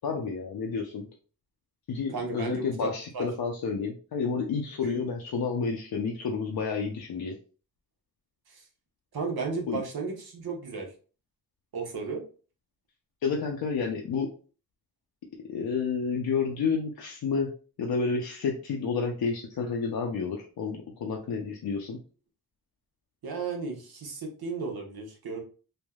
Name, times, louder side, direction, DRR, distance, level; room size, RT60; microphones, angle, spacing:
voice 1, 0.0-1.1 1.9-7.4 9.7-9.8 13.2-14.3 15.5-17.5 17.8-22.0, left 5 dB, 75° left, 0 dB, 0.5 m, -30 dB
voice 2, 2.1-3.3 4.9-5.0 8.5-8.6 9.1-10.9 11.7-12.2 23.2-25.4, right 4 dB, 85° right, 0 dB, 0.9 m, -34 dB
3.3 x 2.1 x 2.2 m, 0.38 s
cardioid pair, 50°, 36 cm